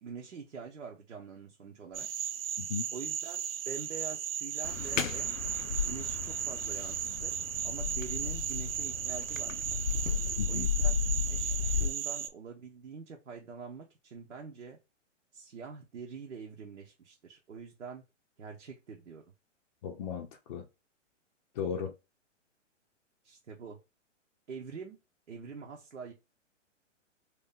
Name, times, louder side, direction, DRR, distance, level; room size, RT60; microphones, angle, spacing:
voice 1, 0.0-2.1 2.9-5.3 5.8-9.6 10.5-11.0 11.2-14.8 15.3-18.0 18.4-19.2 23.2-23.8 24.5-25.0 25.3-26.1, right 5 dB, 85° right, 0.9 m, -45 dB
sound 1, 1.9-12.3, right 9 dB, 50° right, 0.5 m, -36 dB
sound 2, 4.6-11.9, left 7 dB, 90° left, 0.6 m, -34 dB
voice 2, 10.4-10.7 19.8-20.6 21.6-21.9, left 7 dB, 35° left, 0.5 m, -36 dB
3.1 x 2.8 x 3.5 m
hypercardioid pair, 125°, 37 cm